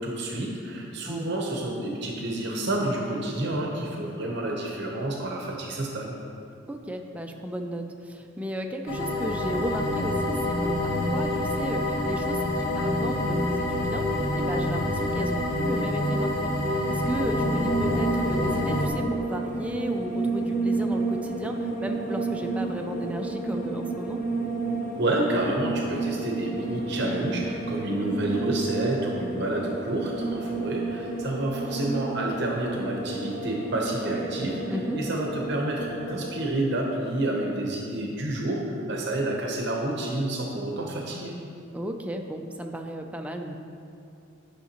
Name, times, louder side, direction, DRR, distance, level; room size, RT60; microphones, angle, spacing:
voice 1, 0.0-6.2 25.0-34.6 35.0-41.3, right 1 dB, 55° right, -1 dB, 0.8 m, -29 dB
voice 2, 6.7-24.2 34.7-35.0 41.7-43.5, equal, 5° right, 3 dB, 0.4 m, -34 dB
sound 1, 8.9-18.9, left 1 dB, 70° left, 1.1 m, -27 dB
sound 2, 17.2-36.5, right 3 dB, 40° left, 0.6 m, -31 dB
9.7 x 5.7 x 2.9 m, 2.6 s
head